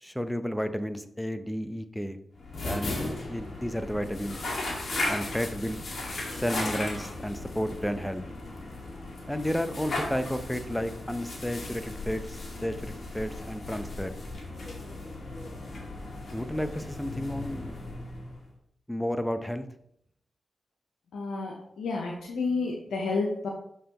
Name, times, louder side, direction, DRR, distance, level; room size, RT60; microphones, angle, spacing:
voice 1, 0.0-2.2 2.6-4.4 5.1-5.8 6.3-8.2 9.3-14.1 16.3-17.8 18.9-19.7, equal, 5° left, 10 dB, 0.7 m, -32 dB
sound 1, 2.4-18.5, left 2 dB, 60° left, 1.9 m, -36 dB
voice 2, 21.1-23.5, left 3 dB, 85° left, -1 dB, 0.8 m, -30 dB
6.3 x 5.7 x 3.0 m, 0.71 s
supercardioid pair, 40°, 0 cm